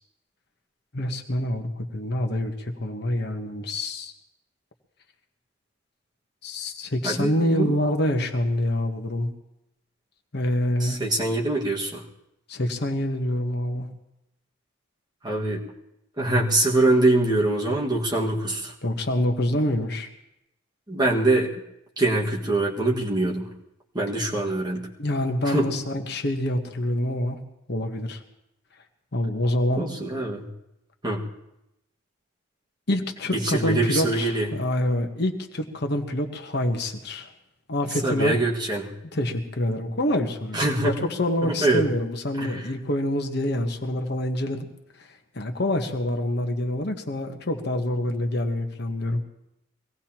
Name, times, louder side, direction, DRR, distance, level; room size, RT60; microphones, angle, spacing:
voice 1, 0.9-4.1 6.4-9.3 10.3-11.0 12.5-13.9 18.8-20.1 25.0-27.4 27.7-28.2 29.1-29.9 32.9-37.3 37.7-38.3 39.1-44.7 45.0-45.1 45.3-49.2, left 1 dB, 50° left, 4 dB, 1.1 m, -26 dB
voice 2, 7.0-7.7 10.8-12.0 15.2-15.6 16.2-18.7 20.9-21.5 22.0-23.5 23.9-24.9 25.5-25.7 29.8-30.4 31.0-31.2 33.3-34.5 38.0-38.9 40.5-41.0 41.4-41.9 42.4-42.5, right 2 dB, 20° right, -3 dB, 1.8 m, -23 dB
23.5 x 17.5 x 2.9 m, 0.87 s
head